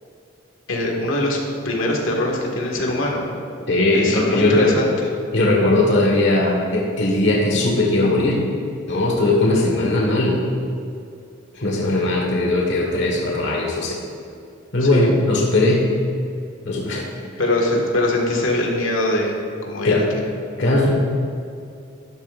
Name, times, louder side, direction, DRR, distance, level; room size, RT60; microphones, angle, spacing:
voice 1, 0.7-1.4 1.7-3.2 3.9-5.1 14.8-15.1 17.4-19.4 19.7-20.0, left 1 dB, 85° left, -1 dB, 1.7 m, -22 dB
voice 2, 3.7-4.7 5.3-8.4 8.9-10.4 11.5-14.0 14.7-15.9 16.6-17.1 19.8-20.0 20.6-20.9, left 2 dB, 65° left, -2 dB, 1.4 m, -19 dB
12.5 x 11.5 x 2.5 m, 2.5 s
head